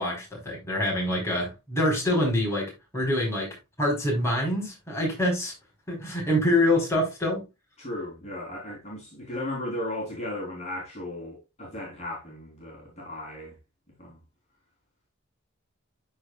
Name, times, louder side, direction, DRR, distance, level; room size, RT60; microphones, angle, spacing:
voice 1, 0.0-5.5 5.9-7.5, left 1 dB, 15° left, 4.0 m, -26 dB
voice 2, 7.8-13.5 14.0-14.2, left 1 dB, 30° left, 3.3 m, -36 dB
12.5 x 4.8 x 2.3 m
head